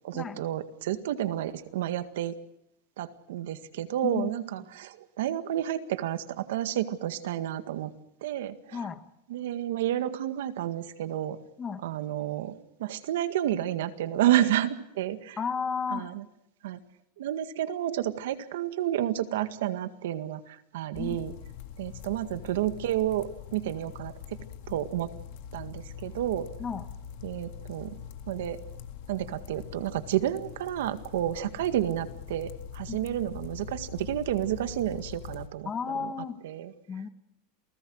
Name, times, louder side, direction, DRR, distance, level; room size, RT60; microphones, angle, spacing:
voice 1, 0.0-2.3 3.0-7.9 8.2-8.8 9.3-11.4 11.8-12.5 12.8-15.4 15.9-16.2 16.6-16.8 17.2-21.3 21.8-24.1 24.7-25.1 25.5-26.5 27.2-27.9 28.3-28.6 29.1-35.7 36.4-36.7, right 12 dB, 85° right, 10 dB, 1.9 m, -30 dB
voice 2, 15.4-16.1 21.0-21.2 26.6-26.9 32.9-33.0 35.6-36.4 36.9-37.1, left 6 dB, 15° left, 10 dB, 1.4 m, -33 dB
sound 1, 20.9-35.5, left 8 dB, 55° left, 1.9 m, -43 dB
28.5 x 19.5 x 6.4 m, 0.81 s
supercardioid pair, 165°, 0 cm